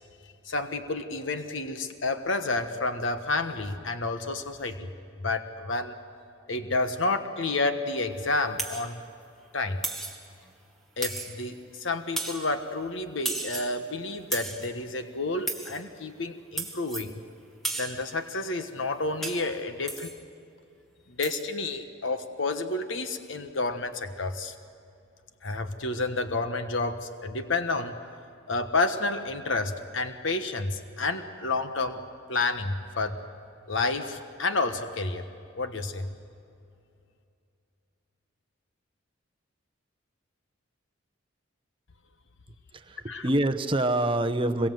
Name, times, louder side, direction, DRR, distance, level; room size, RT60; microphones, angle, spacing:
voice 1, 0.4-4.9 5.2-6.0 6.5-9.0 9.5-9.9 11.0-17.2 17.8-20.1 21.1-24.5 25.4-28.0 28.5-32.0 32.3-33.2 33.7-35.2 35.5-36.2 43.1-43.3, left 3 dB, 70° left, 8 dB, 1.3 m, -30 dB
sound 1, 8.6-8.9 9.8-10.2 11.0-11.5 12.2-12.5 13.2-13.8 14.3-14.7 15.5-15.8 16.6-17.1 17.6-18.0 19.2-19.5 19.9-20.2 21.2-21.4, right 2 dB, ahead, 2.0 m, -34 dB
voice 2, 42.7-44.7, right 1 dB, 25° right, 8 dB, 0.9 m, -26 dB
26.0 x 22.5 x 7.8 m, 2.6 s
head